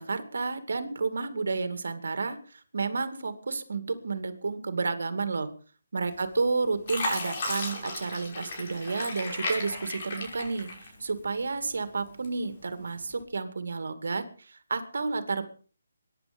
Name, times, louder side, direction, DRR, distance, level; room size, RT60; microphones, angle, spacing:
voice 1, 0.0-5.5 5.9-15.4, right 4 dB, 70° right, 10 dB, 2.4 m, -31 dB
Fill (with liquid), 6.1-6.5 6.9-11.3 11.7-12.5 13.0-13.2, left 2 dB, 40° left, 5.7 m, -35 dB
23.0 x 10.5 x 5.4 m, 0.41 s
hypercardioid pair, 165°, 0 cm